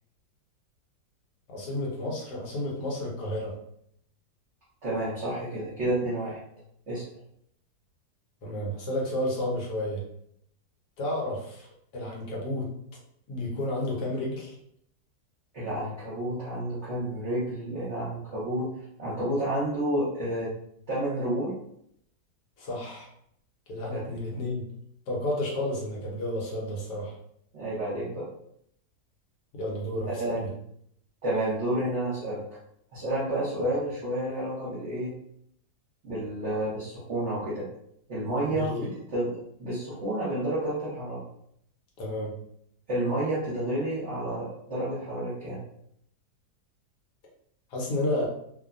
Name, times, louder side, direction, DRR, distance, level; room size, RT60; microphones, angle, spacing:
voice 1, 1.5-3.6 8.4-10.0 11.0-12.7 13.3-14.5 22.6-23.1 23.7-24.7 25.1-27.2 29.5-30.5 38.4-38.9 42.0-42.3 47.7-48.3, left 1 dB, 80° left, -3 dB, 1.4 m, -31 dB
voice 2, 4.8-6.4 6.9-7.1 15.5-18.7 19.0-20.5 20.9-21.5 23.9-24.0 27.5-28.3 30.1-30.4 31.2-32.4 32.9-35.1 36.0-37.7 38.1-38.8 39.1-41.2 42.9-45.6, right 1 dB, 50° right, -9 dB, 1.0 m, -30 dB
3.1 x 2.1 x 2.4 m, 0.70 s
omnidirectional pair, 1.8 m